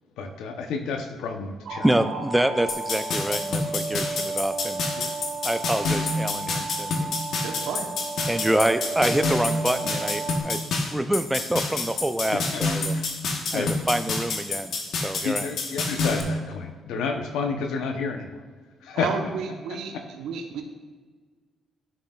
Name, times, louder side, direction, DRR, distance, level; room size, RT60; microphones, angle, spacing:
voice 1, 0.2-1.9 5.0-5.1 12.3-12.6 12.9-13.0 13.5-13.7 15.2-18.4 18.8-19.1, left 5 dB, 90° left, 5 dB, 0.8 m, -30 dB
sound 1, 1.7-10.4, right 4 dB, 65° right, 1.6 m, -33 dB
voice 2, 1.8-4.8 5.4-7.2 8.3-12.9 13.5-14.8 15.0-15.5, right 1 dB, 10° right, 9 dB, 0.4 m, -26 dB
sound 2, 2.7-16.2, left 3 dB, 70° left, 1.2 m, -28 dB
voice 3, 7.4-7.9 18.9-20.6, right 5 dB, 85° right, 4 dB, 0.9 m, -32 dB
11.5 x 6.3 x 2.4 m, 1.5 s
cardioid pair, 90°, 0 cm